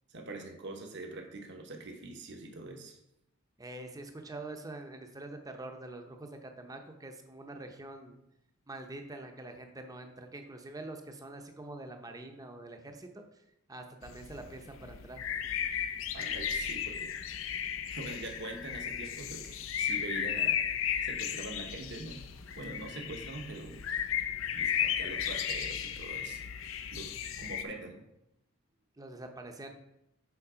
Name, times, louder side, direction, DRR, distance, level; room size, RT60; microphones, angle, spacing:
voice 1, 0.1-3.0 16.1-17.3 17.9-20.6 21.0-22.2 22.6-23.8 24.5-26.4 26.9-27.1 27.4-28.0, right 2 dB, 55° right, 2 dB, 1.0 m, -43 dB
voice 2, 3.6-8.1 8.7-13.2 13.7-15.2 29.0-29.7, right 2 dB, 15° right, 5 dB, 0.7 m, -45 dB
sound 1, 14.0-27.6, left 8 dB, 65° left, 0.5 m, -35 dB
7.1 x 4.5 x 5.0 m, 0.84 s
head